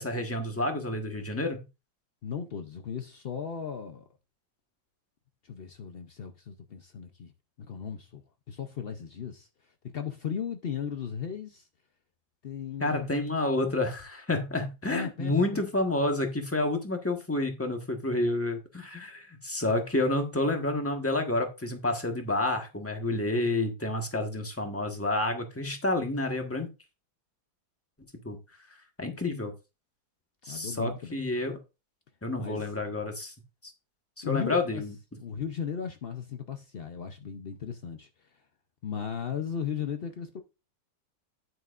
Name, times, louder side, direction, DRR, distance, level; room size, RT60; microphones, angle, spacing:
voice 1, 0.0-1.6 12.8-26.7 28.2-28.4 29.0-29.5 30.4-31.6 32.2-33.3 34.2-34.9, left 2 dB, 10° left, 1.1 m, -29 dB
voice 2, 2.2-4.0 5.4-7.3 7.6-11.7 12.4-13.1 14.9-15.6 23.1-23.6 30.5-31.2 32.4-32.7 34.2-34.8 35.2-38.4 38.8-40.4, left 7 dB, 75° left, 0.5 m, -36 dB
9.8 x 9.0 x 2.5 m
omnidirectional pair, 2.0 m